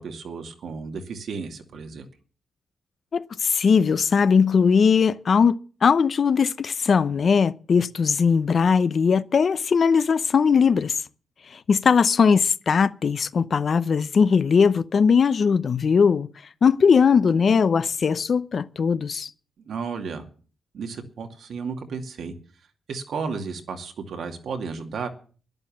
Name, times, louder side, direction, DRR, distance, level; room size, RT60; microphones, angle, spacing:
voice 1, 0.0-2.1 19.7-20.3 20.7-22.3 22.9-25.1, right 5 dB, 65° right, 2.3 m, -33 dB
voice 2, 3.1-5.6 5.8-11.0 11.5-16.3 16.6-19.3, left 6 dB, 45° left, 0.7 m, -19 dB
12.0 x 11.5 x 7.3 m
wide cardioid pair, 135°, 0 cm